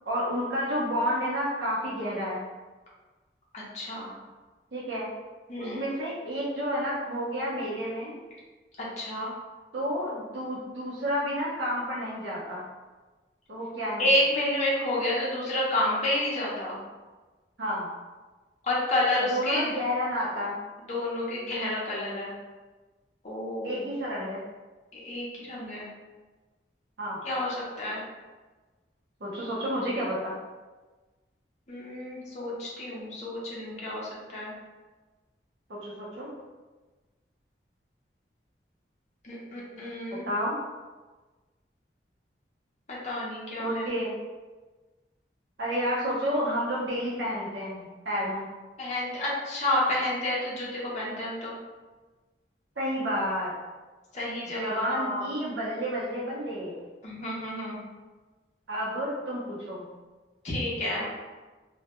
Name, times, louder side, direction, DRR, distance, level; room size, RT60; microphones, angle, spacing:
voice 1, 0.1-2.5 4.7-5.1 5.6-8.1 9.7-12.6 13.5-14.1 17.6-17.9 19.2-20.5 23.6-24.4 27.0-27.2 29.2-30.3 35.7-36.3 40.3-40.6 43.6-44.1 45.6-48.5 52.8-53.5 54.6-56.9 58.7-59.9, equal, 80° right, -6 dB, 0.7 m, -30 dB
voice 2, 3.5-4.2 5.5-5.8 8.8-9.3 14.0-16.8 18.6-19.7 20.9-22.3 23.2-23.8 24.9-25.9 27.2-28.0 31.7-34.5 39.2-40.3 42.9-43.9 48.8-51.5 54.1-55.3 57.0-57.8 60.4-61.1, left 1 dB, 40° left, -6 dB, 0.6 m, -30 dB
2.2 x 2.2 x 2.8 m, 1.3 s
head